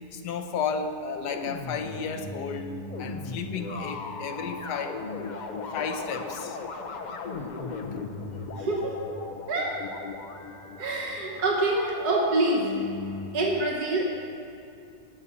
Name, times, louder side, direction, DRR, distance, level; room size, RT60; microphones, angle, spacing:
voice 1, 0.1-2.7 3.0-5.0 5.7-6.6, left 5 dB, 80° left, 6 dB, 1.3 m, -33 dB
sound 1, 1.3-13.3, left 3 dB, 60° left, 0.4 m, -37 dB
voice 2, 8.6-9.0 9.5-9.8 10.8-12.7 13.3-14.1, right 2 dB, 70° right, -1 dB, 2.0 m, -26 dB
18.0 x 7.2 x 4.2 m, 2.6 s
omnidirectional pair, 1.8 m